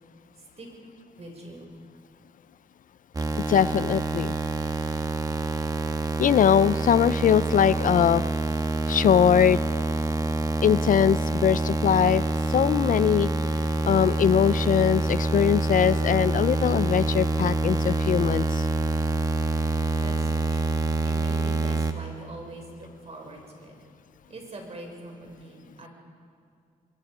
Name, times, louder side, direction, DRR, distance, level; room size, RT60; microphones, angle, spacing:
voice 1, 1.2-1.7 20.0-23.8 24.3-25.9, right 2 dB, 45° right, 2 dB, 5.7 m, -42 dB
sound 1, 3.1-21.9, right 2 dB, 25° right, 1.5 m, -26 dB
voice 2, 3.5-4.3 6.2-8.2 8.9-9.6 10.6-12.2 12.5-13.3 13.8-18.7, left 8 dB, 65° left, 17 dB, 0.5 m, -21 dB
27.5 x 22.0 x 5.0 m, 2.3 s
cardioid pair, 85°, 15 cm